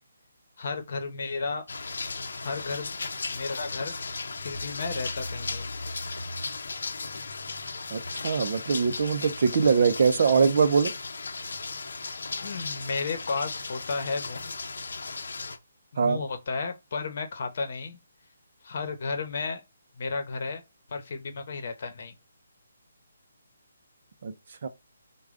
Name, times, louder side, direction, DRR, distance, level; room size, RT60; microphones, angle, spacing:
voice 1, 0.6-1.7 2.4-3.0 3.3-4.0 4.4-5.7 12.4-14.5 15.9-18.0 18.6-19.6 20.0-20.6 20.9-22.1, left 4 dB, 50° left, 1.0 m, -33 dB
sound 1, 1.7-15.6, left 3 dB, 75° left, 0.6 m, -36 dB
voice 2, 7.9-10.9 16.0-16.2 24.2-24.3 24.6-24.7, right 5 dB, 50° right, 0.5 m, -22 dB
4.9 x 2.3 x 3.7 m
hypercardioid pair, 165°, 0 cm